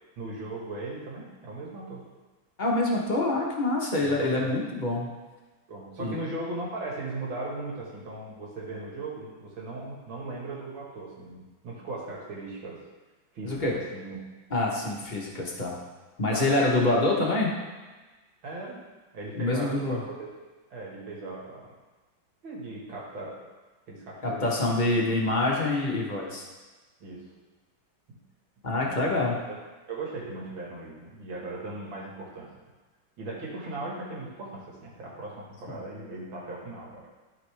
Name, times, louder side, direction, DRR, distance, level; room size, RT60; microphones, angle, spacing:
voice 1, 0.2-2.0 4.0-4.5 5.7-12.8 13.3-14.2 16.3-17.1 18.4-18.8 19.1-20.1 20.7-21.7 22.4-23.3 23.9-25.0 27.0-27.2 28.1-28.2 28.7-29.3 29.9-32.5 33.2-37.0, right 2 dB, 75° right, -4 dB, 2.4 m, -38 dB
voice 2, 2.6-5.1 6.0-6.2 13.4-13.8 14.5-15.8 16.2-17.5 19.4-20.0 24.2-26.4 28.6-29.4, left 2 dB, 30° left, -3 dB, 1.0 m, -26 dB
12.5 x 4.3 x 3.4 m, 1.3 s
omnidirectional pair, 2.2 m